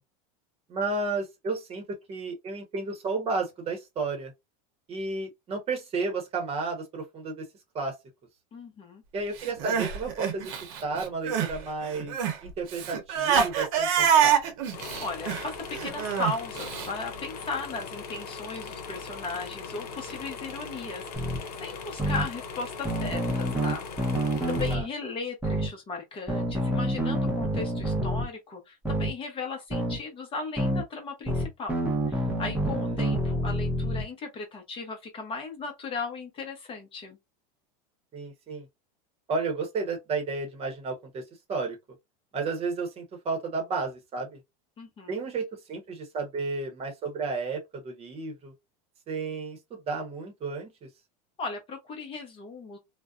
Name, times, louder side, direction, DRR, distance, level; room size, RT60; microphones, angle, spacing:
voice 1, 0.7-4.3 4.9-7.5 7.7-8.0 9.1-10.5 10.8-12.1 12.4-14.4 24.7-24.8 32.8-32.9 38.1-38.7 39.3-41.2 41.5-41.8 42.3-44.4 45.1-48.5 49.1-50.9, right 4 dB, 30° right, 0.9 m, -32 dB
voice 2, 8.5-9.0 15.0-21.3 21.6-23.9 24.5-37.2 44.8-45.2 51.4-52.8, left 3 dB, 30° left, 0.8 m, -36 dB
Crying sobbing, 9.4-11.6 11.8-16.9, right 8 dB, 65° right, 0.8 m, -26 dB
sound 1, 14.7-24.8, left 5 dB, 80° left, 0.8 m, -40 dB
sound 2, 21.1-21.4 22.0-22.3 22.9-24.8 25.4-25.7 26.3-28.3 28.8-29.1 29.7-30.0 30.6-30.8 31.3-34.0, right 1 dB, 5° right, 0.7 m, -27 dB
2.5 x 2.1 x 2.3 m
supercardioid pair, 125°, 19 cm